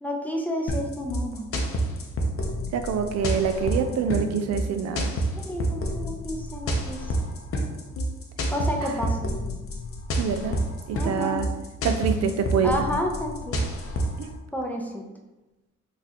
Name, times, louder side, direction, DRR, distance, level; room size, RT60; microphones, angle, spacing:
voice 1, 0.0-1.5 5.5-7.1 8.5-9.3 10.9-11.4 12.6-13.6 14.5-15.1, equal, 5° left, 1 dB, 0.5 m, -30 dB
sound 1, 0.7-14.2, equal, 45° left, 0.6 m, -28 dB
voice 2, 2.7-5.1 8.8-8.9 10.2-10.6 10.9-11.5 11.8-12.7 14.2-14.3, right 6 dB, 60° right, 8 dB, 0.4 m, -26 dB
3.9 x 2.4 x 2.9 m, 1.1 s
cardioid pair, 90°, 30 cm